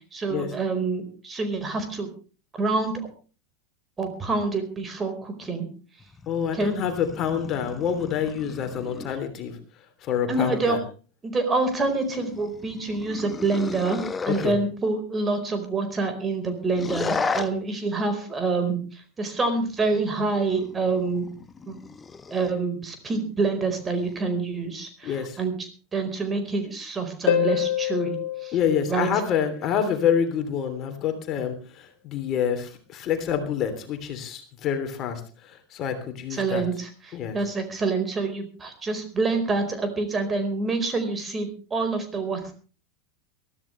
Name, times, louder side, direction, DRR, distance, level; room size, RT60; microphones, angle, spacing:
voice 1, 0.1-2.1 2.6-2.9 4.0-5.6 6.5-6.8 10.3-10.8 11.2-14.0 14.2-21.3 21.7-21.8 22.3-28.2 28.4-28.6 28.9-29.1 36.3-42.5, right 3 dB, 20° right, 8 dB, 4.4 m, -27 dB
sound 1, 6.0-9.2 11.7-14.5 16.7-17.5 19.6-22.6 23.7-24.2, left 4 dB, 20° left, 1.0 m, -35 dB
voice 2, 6.3-9.5 10.1-10.8 14.3-14.5 25.0-25.4 28.5-35.2 35.7-36.6 37.1-37.4, left 8 dB, 35° left, 7 dB, 3.1 m, -27 dB
Harp, 27.3-29.8 33.3-33.4, left 11 dB, 55° left, 2.2 m, -27 dB
22.5 x 14.0 x 3.3 m, 0.37 s
figure-of-eight pair, 85°, 0 cm